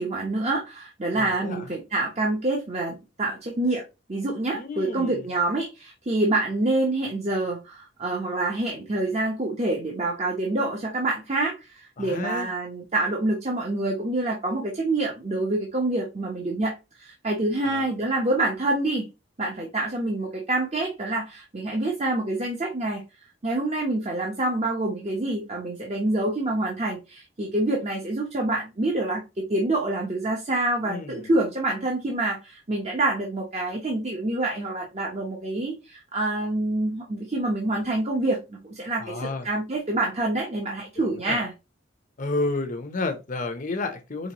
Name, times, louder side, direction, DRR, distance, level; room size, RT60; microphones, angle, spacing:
voice 1, 0.0-3.8 4.1-19.0 19.4-23.0 23.4-41.5, right 2 dB, 35° right, 1.0 m, -27 dB
voice 2, 1.1-1.7 4.5-5.3 12.0-12.5 17.6-17.9 30.9-31.3 39.0-39.5 41.0-41.4 42.2-44.3, left 3 dB, 45° left, 0.8 m, -31 dB
5.3 x 3.4 x 2.9 m
head